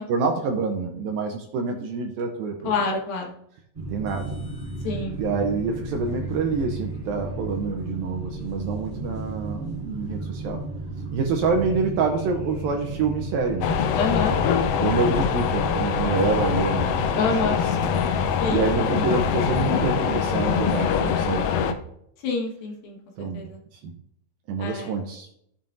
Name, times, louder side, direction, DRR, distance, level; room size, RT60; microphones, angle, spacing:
voice 1, 0.1-2.8 3.9-4.3 5.2-10.6 11.1-13.7 14.1-14.3 14.8-17.6 18.1-21.8 23.2-23.5 23.7-23.9 24.5-25.3, right 4 dB, 75° right, 3 dB, 2.3 m, -27 dB
voice 2, 2.6-3.3 4.8-5.2 14.0-14.4 17.2-17.6 18.4-18.6 19.0-19.1 22.2-23.6 24.6-24.9, left 4 dB, 65° left, -1 dB, 3.0 m, -27 dB
sound 1, 3.7-20.7, right 2 dB, 15° right, 2.2 m, -34 dB
sound 2, 13.6-21.7, left 8 dB, 80° left, 2.1 m, -24 dB
14.5 x 7.2 x 2.6 m, 0.72 s
omnidirectional pair, 4.9 m